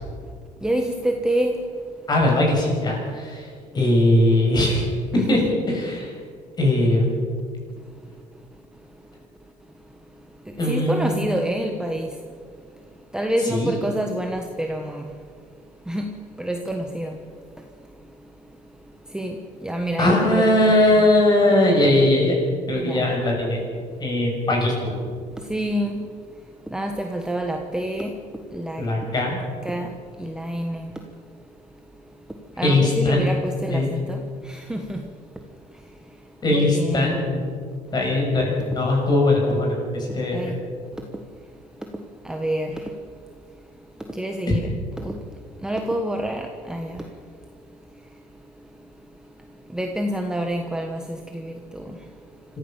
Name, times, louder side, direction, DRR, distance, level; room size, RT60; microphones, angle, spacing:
voice 1, 0.6-1.6 5.1-5.6 10.6-12.1 13.1-15.1 15.9-16.1 16.4-17.2 19.1-21.0 22.8-23.1 25.5-26.0 26.7-28.1 28.5-28.8 29.6-29.9 30.2-30.9 32.6-35.0 36.5-37.2 40.3-40.6 42.2-42.9 44.1-44.7 45.0-45.2 45.6-47.0 49.7-52.0, right 1 dB, 5° right, 3 dB, 1.2 m, -27 dB
voice 2, 2.1-4.8 5.1-5.4 5.7-6.1 6.6-7.1 10.6-11.2 13.4-13.7 20.0-22.3 22.7-23.6 24.0-24.9 28.8-29.4 32.6-33.4 33.7-33.9 36.4-37.5 37.9-40.4 44.5-44.6, left 1 dB, 30° left, 0 dB, 6.9 m, -20 dB
26.5 x 15.0 x 7.4 m, 2.1 s
cardioid pair, 155°, 15 cm